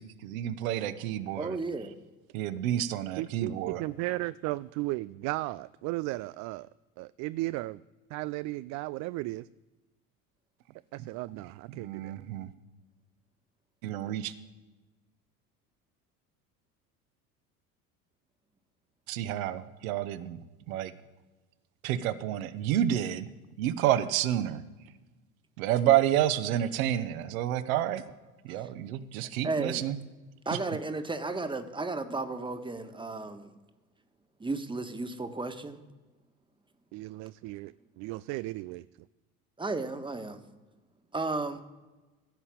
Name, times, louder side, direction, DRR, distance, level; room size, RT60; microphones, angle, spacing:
voice 1, 0.0-1.6 2.3-3.8 11.0-11.1 11.7-12.5 13.8-14.3 19.1-20.4 20.7-20.9 21.8-23.3 23.6-24.6 25.6-28.0 28.4-30.0, right 12 dB, 65° right, 11 dB, 1.1 m, -29 dB
voice 2, 1.3-1.9 28.5-28.6 29.4-29.8 30.4-33.5 34.4-35.8 39.6-40.4 41.1-41.6, right 3 dB, 10° right, 8 dB, 1.5 m, -34 dB
voice 3, 3.1-6.7 7.0-7.8 8.1-9.5 10.9-12.1 36.9-38.8, right 19 dB, 40° right, 17 dB, 0.4 m, -35 dB
16.0 x 5.7 x 8.5 m, 1.2 s
figure-of-eight pair, 70°, 44 cm